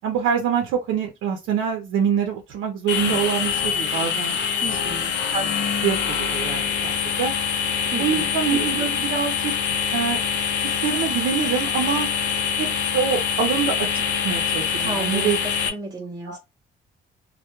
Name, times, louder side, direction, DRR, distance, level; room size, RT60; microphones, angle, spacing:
voice 1, 0.0-4.4 4.7-4.8 5.3-5.5 5.8-7.3 8.0-10.2 10.6-12.1 12.6-12.7 12.9-13.9 14.2-15.4 16.2-16.4, right 7 dB, 85° right, 0.5 m, -25 dB
sound 1, 2.9-15.7, left 7 dB, 65° left, 0.5 m, -24 dB
voice 2, 4.6-5.1 7.9-8.3 14.8-16.4, right 2 dB, 20° right, 0.6 m, -33 dB
2.2 x 2.1 x 2.9 m
cardioid pair, 90°, 20 cm